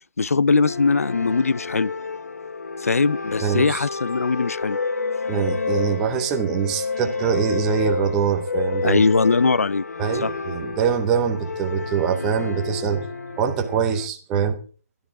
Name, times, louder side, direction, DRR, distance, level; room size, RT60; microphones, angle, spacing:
voice 1, 0.2-1.9 2.8-4.8 8.8-9.8 10.2-10.3, left 4 dB, 70° left, 0.5 m, -20 dB
sound 1, 0.6-14.1, left 4 dB, 85° left, 1.1 m, -30 dB
voice 2, 3.4-3.8 5.3-9.0 10.0-13.1 13.4-14.6, right 7 dB, 5° right, 0.6 m, -23 dB
16.5 x 12.5 x 3.7 m
hypercardioid pair, 180°, 8 cm